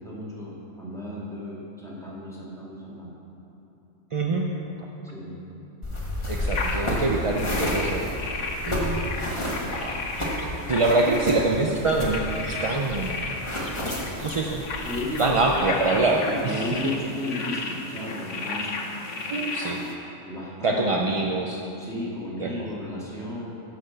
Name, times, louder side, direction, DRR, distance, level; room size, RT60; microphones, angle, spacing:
voice 1, 0.0-3.1 5.1-5.3 14.8-15.3 16.2-18.7 20.2-21.1 21.8-23.5, left 1 dB, ahead, -8 dB, 2.3 m, -34 dB
voice 2, 4.1-4.5 6.3-8.1 8.7-9.0 9.7-10.0 10.7-13.2 14.2-14.6 15.2-16.7 19.3-19.8 20.6-21.6 22.4-22.7, right 2 dB, 45° right, 0 dB, 0.4 m, -25 dB
sound 1, 5.8-15.6, left 1 dB, 25° left, 1.6 m, -31 dB
sound 2, 6.5-19.9, left 3 dB, 75° left, 1.2 m, -34 dB
10.5 x 6.0 x 6.8 m, 3.0 s
omnidirectional pair, 1.3 m